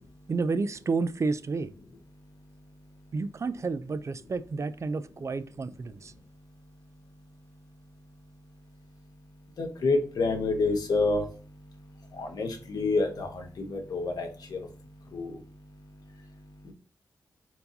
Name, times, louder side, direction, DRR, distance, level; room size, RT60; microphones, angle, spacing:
voice 1, 0.3-1.7 3.1-6.1, right 4 dB, 45° right, 0.4 m, -30 dB
voice 2, 2.1-3.4 4.9-16.7, left 3 dB, 75° left, 1.1 m, -33 dB
4.5 x 4.0 x 2.7 m
cardioid pair, 55°, 7 cm